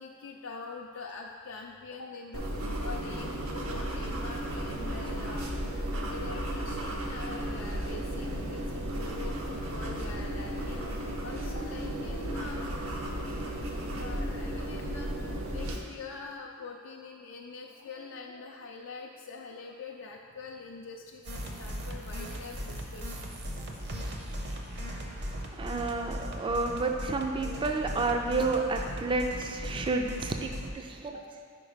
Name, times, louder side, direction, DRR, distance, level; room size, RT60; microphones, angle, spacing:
voice 1, 0.0-12.7 13.7-23.9 24.3-24.4 31.1-31.3, left 4 dB, 65° left, 0 dB, 0.4 m, -45 dB
sound 1, 2.3-15.7, right 1 dB, 90° right, 0.8 m, -34 dB
sound 2, 21.2-30.7, equal, 55° right, 0.7 m, -38 dB
voice 2, 25.6-31.2, right 3 dB, 25° right, 3 dB, 0.3 m, -30 dB
5.2 x 4.6 x 4.9 m, 2.1 s
head